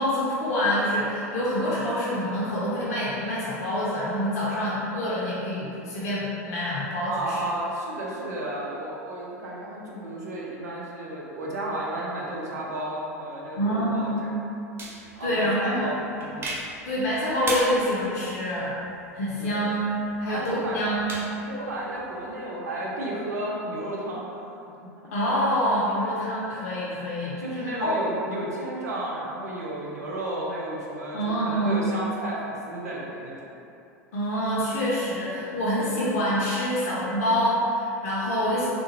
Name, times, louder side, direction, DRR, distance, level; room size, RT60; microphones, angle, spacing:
voice 1, 0.0-7.4 13.5-14.2 15.2-15.9 16.9-18.8 19.1-19.8 20.2-21.1 25.1-28.0 31.1-31.8 34.1-38.7, equal, 65° left, -7 dB, 0.6 m, -26 dB
voice 2, 7.1-14.4 15.2-16.6 19.4-19.7 20.3-20.8 21.5-24.6 24.9-25.0 27.4-33.5, right 1 dB, 75° right, -4 dB, 0.7 m, -33 dB
sound 1, 14.8-22.3, right 2 dB, 25° right, 0.7 m, -39 dB
3.5 x 2.2 x 2.9 m, 2.7 s
figure-of-eight pair, 85°, 9 cm